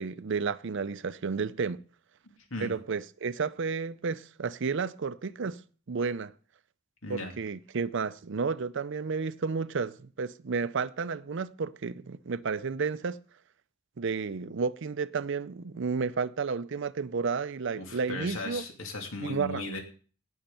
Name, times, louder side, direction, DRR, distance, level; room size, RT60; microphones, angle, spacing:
voice 1, 0.0-1.8 2.6-5.6 5.9-6.3 7.1-13.2 14.0-18.6 19.2-19.7, right 5 dB, 60° right, 0.5 m, -32 dB
voice 2, 17.7-19.8, left 2 dB, 80° left, 2.9 m, -37 dB
18.0 x 6.5 x 5.7 m
head